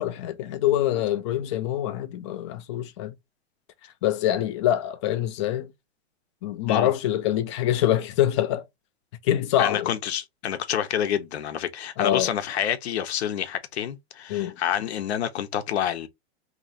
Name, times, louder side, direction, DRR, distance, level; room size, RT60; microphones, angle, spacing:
voice 1, 0.0-3.1 4.0-5.7 6.4-8.6 9.2-9.9 12.0-12.3 14.3-14.6, left 12 dB, 30° left, 0.3 m, -25 dB
voice 2, 9.6-16.1, left 10 dB, 75° left, 0.8 m, -28 dB
3.0 x 2.6 x 4.1 m
supercardioid pair, 150°, 32 cm